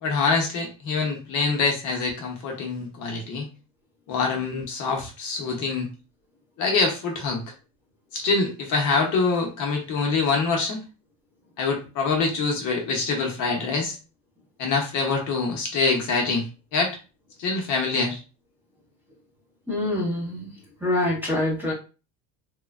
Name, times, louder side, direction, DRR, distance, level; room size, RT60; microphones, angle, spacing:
voice 1, 0.0-3.5 4.1-5.9 6.6-7.4 8.1-10.8 11.6-14.0 14.6-16.4 16.7-17.0 17.4-18.2, left 4 dB, 45° left, 1 dB, 0.7 m, -25 dB
voice 2, 19.7-20.5 20.8-21.7, left 1 dB, 5° right, -4 dB, 0.8 m, -25 dB
3.0 x 2.1 x 2.3 m, 0.32 s
cardioid pair, 140°, 42 cm